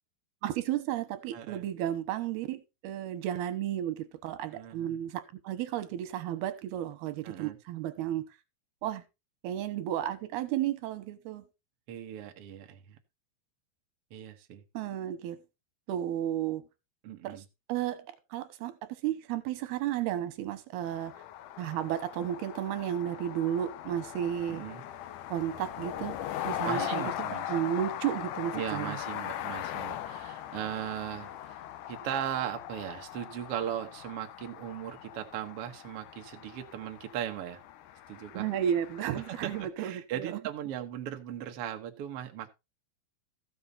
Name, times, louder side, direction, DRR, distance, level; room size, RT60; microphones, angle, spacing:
voice 1, 0.4-8.2 8.8-9.0 9.4-11.4 14.7-15.4 15.9-16.6 17.2-17.4 17.7-21.1 21.6-24.6 25.3-26.2 26.4-27.0 27.5-29.0 38.3-40.4, right 11 dB, 85° right, 3.1 m, -33 dB
voice 2, 1.3-1.6 4.5-5.0 7.2-7.6 11.9-13.0 14.1-14.6 17.0-17.4 24.5-24.8 26.6-27.5 28.5-31.6 31.9-37.6 38.1-38.5 39.1-42.5, right 10 dB, 65° right, 1.5 m, -38 dB
sound 1, 20.8-39.7, left 11 dB, 75° left, 2.0 m, -40 dB
14.0 x 7.1 x 4.0 m
omnidirectional pair, 4.4 m